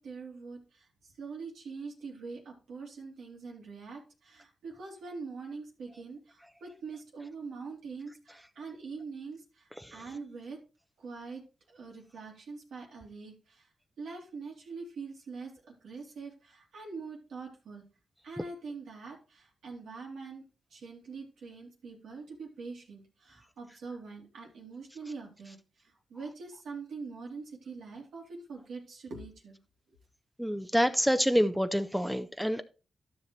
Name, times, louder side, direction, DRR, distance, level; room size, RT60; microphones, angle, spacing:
voice 1, 0.0-10.6 11.0-13.7 14.0-17.8 18.2-29.6, right 4 dB, 85° right, 2.8 m, -44 dB
voice 2, 30.4-32.6, equal, ahead, 0.7 m, -27 dB
12.5 x 5.8 x 3.2 m
cardioid pair, 60°, 0 cm